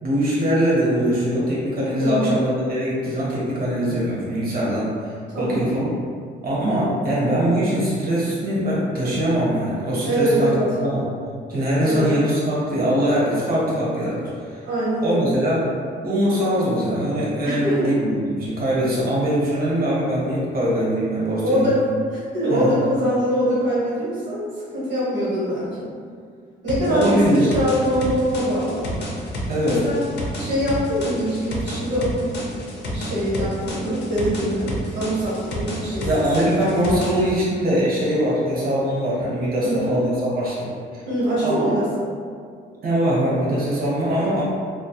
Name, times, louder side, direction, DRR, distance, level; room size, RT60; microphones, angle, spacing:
voice 1, 0.0-4.9 5.4-5.9 6.4-11.1 11.5-14.6 15.0-15.6 16.0-21.7 22.5-22.7 26.9-27.5 29.5-29.8 36.0-41.0 41.4-41.7 42.8-44.4, equal, 50° right, -6 dB, 0.9 m, -22 dB
voice 2, 2.0-2.4 5.3-5.7 10.0-10.6 11.8-12.2 14.7-15.3 17.4-17.9 21.4-25.9 26.6-28.9 29.6-30.0 30.4-32.1 32.5-32.6 32.9-36.1 39.6-39.9 41.1-42.1, equal, 65° right, -9 dB, 1.1 m, -23 dB
sound 1, 26.7-37.3, equal, 60° left, 0.6 m, -30 dB
2.2 x 2.1 x 2.6 m, 2.1 s
cardioid pair, 90°, 20 cm